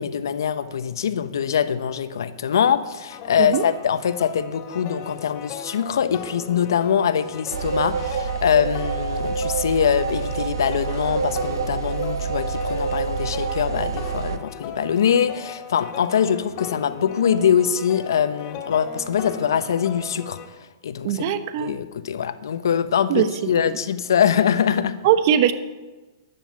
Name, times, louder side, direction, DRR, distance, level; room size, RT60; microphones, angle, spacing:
voice 1, 0.0-20.6 20.8-25.0, left 8 dB, 75° left, 11 dB, 1.1 m, -23 dB
sound 1, 3.1-20.5, left 6 dB, 40° left, 2.3 m, -38 dB
sound 2, 7.5-14.4, right 5 dB, 85° right, 1.2 m, -27 dB
voice 2, 21.0-21.7 23.1-23.3 23.6-23.7 25.0-25.5, right 10 dB, 50° right, 10 dB, 1.2 m, -20 dB
13.5 x 10.0 x 7.1 m, 1.2 s
hypercardioid pair, 120°, 2 cm